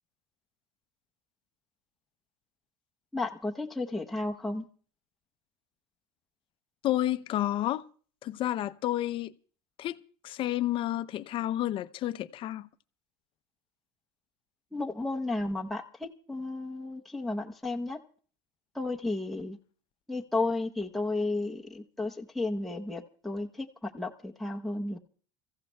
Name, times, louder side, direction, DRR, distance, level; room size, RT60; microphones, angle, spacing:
voice 1, 3.1-4.7 14.7-18.0 18.7-19.6 20.1-25.0, left 2 dB, ahead, 0.8 m, -33 dB
voice 2, 6.8-7.8 8.2-9.3 9.8-10.0 10.2-12.7, left 13 dB, 45° left, 0.6 m, -30 dB
29.5 x 15.0 x 2.2 m
supercardioid pair, 115°, 12 cm